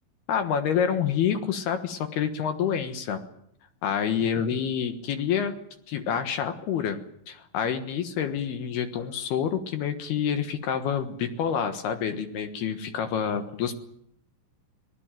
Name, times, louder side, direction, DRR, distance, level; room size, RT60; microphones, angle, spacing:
voice 1, 0.3-3.2 3.8-5.5 5.9-7.0 7.3-13.8, left 8 dB, 65° left, 8 dB, 3.1 m, -27 dB
24.0 x 19.5 x 9.1 m, 0.72 s
omnidirectional pair, 5.4 m